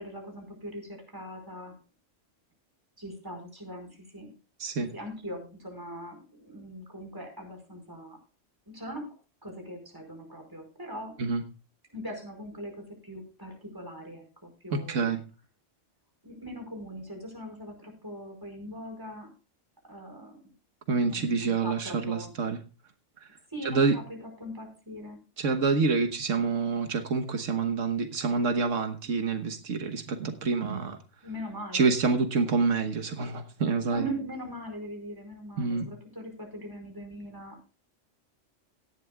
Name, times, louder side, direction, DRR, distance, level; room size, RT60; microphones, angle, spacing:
voice 1, 0.0-1.7 3.0-4.3 4.9-8.2 8.7-9.1 9.4-11.2 11.9-15.1 16.2-19.3 19.9-20.4 21.0-22.3 23.5-24.0 24.4-25.2 31.2-31.9 33.9-37.6, equal, 15° right, 3 dB, 4.9 m, -41 dB
voice 2, 4.6-4.9 11.2-11.4 14.7-15.2 20.9-22.6 23.6-24.0 25.4-31.0 31.7-34.1 35.6-35.9, right 4 dB, 85° right, 7 dB, 1.6 m, -27 dB
17.5 x 11.0 x 2.3 m, 0.33 s
omnidirectional pair, 1.3 m